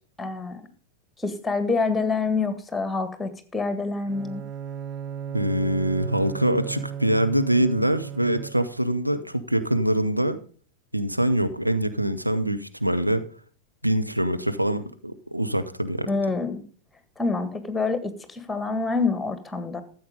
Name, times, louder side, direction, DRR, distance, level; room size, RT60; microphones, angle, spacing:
voice 1, 0.2-0.6 1.2-4.4 16.1-16.6 17.2-19.8, left 4 dB, 10° left, 11 dB, 1.7 m, -27 dB
Bowed string instrument, 4.0-8.9, right 8 dB, 35° right, 0.8 m, -35 dB
voice 2, 5.3-10.4 10.9-13.2 13.8-16.1, right 1 dB, 90° right, 9 dB, 1.0 m, -24 dB
13.5 x 7.8 x 5.2 m, 0.42 s
figure-of-eight pair, 90°, 0 cm